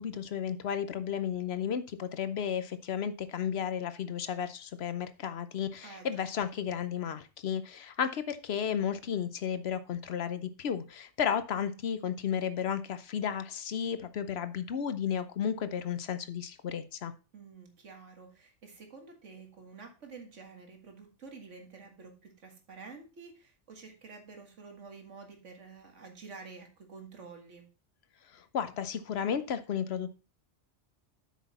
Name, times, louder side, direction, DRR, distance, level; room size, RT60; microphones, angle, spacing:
voice 1, 0.0-17.1 28.3-30.1, left 8 dB, 65° left, 12 dB, 0.9 m, -33 dB
voice 2, 5.8-6.2 17.3-27.7, right 4 dB, 90° right, 4 dB, 2.1 m, -49 dB
8.0 x 6.3 x 4.1 m, 0.33 s
omnidirectional pair, 1.2 m